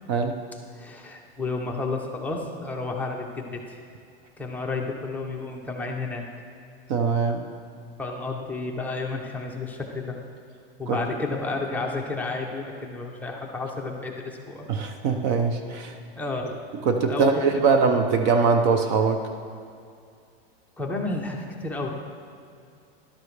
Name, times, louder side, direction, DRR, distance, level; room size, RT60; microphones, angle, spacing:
voice 1, 0.8-3.6 4.4-6.2 8.0-10.2 10.8-14.7 16.2-16.5 17.1-17.8 20.8-21.9, left 3 dB, 5° left, -1 dB, 0.7 m, -31 dB
voice 2, 6.9-7.5 10.9-11.0 14.7-15.9 16.9-19.2, right 5 dB, 45° right, 6 dB, 0.7 m, -22 dB
12.5 x 11.5 x 3.3 m, 2.4 s
supercardioid pair, 155°, 31 cm